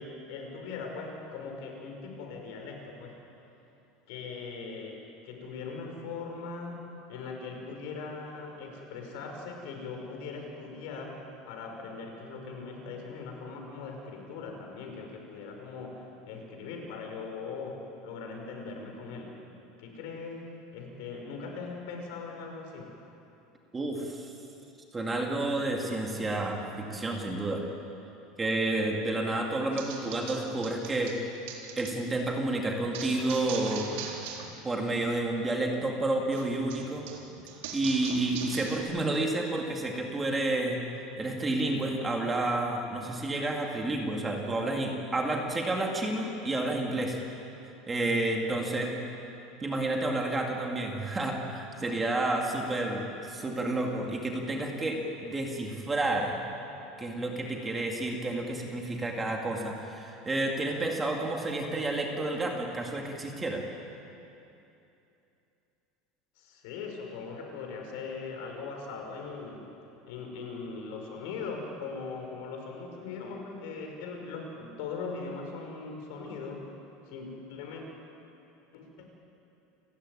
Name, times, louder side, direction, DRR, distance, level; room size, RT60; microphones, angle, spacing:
voice 1, 0.0-3.2 4.1-6.8 7.1-19.4 19.8-23.0 66.4-69.7 70.1-76.7 77.1-77.8 78.7-79.1, left 4 dB, 65° left, 2 dB, 5.6 m, -40 dB
voice 2, 23.7-24.3 24.9-27.7 28.4-31.2 31.8-33.9 34.6-37.1 37.7-40.8 41.2-47.2 47.9-48.9 49.6-56.4 57.0-63.6, right 2 dB, 10° right, 1 dB, 2.2 m, -30 dB
sound 1, 29.7-31.9 32.9-34.5 34.8-35.2 36.3-38.8, right 7 dB, 80° right, 3.9 m, -41 dB
29.5 x 15.0 x 9.9 m, 2.8 s
cardioid pair, 170°, 0 cm